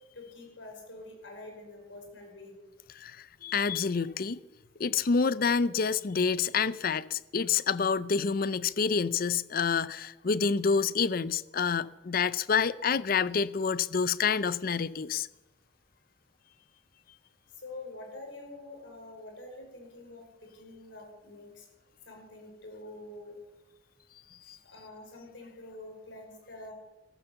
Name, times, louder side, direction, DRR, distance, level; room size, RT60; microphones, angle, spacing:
voice 1, 0.1-2.6 17.6-21.6 22.1-23.4 24.6-26.7, left 2 dB, 85° left, 5.3 m, -46 dB
voice 2, 3.0-4.4 4.8-15.3 24.5-24.6, left 5 dB, 50° left, 0.5 m, -28 dB
14.0 x 13.5 x 7.0 m
head